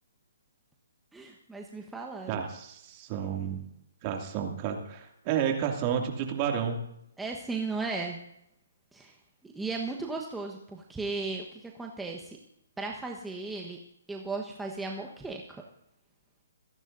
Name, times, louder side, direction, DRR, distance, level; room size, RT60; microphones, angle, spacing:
voice 1, 1.1-2.4 7.2-8.2 8.9-9.1 9.4-12.4 12.8-13.8 14.1-15.6, right 3 dB, 5° right, 0 dB, 1.3 m, -36 dB
voice 2, 2.3-3.6 4.0-6.9, right 8 dB, 30° right, 2 dB, 2.5 m, -31 dB
27.0 x 11.0 x 2.7 m, 0.79 s
hypercardioid pair, 140°, 0 cm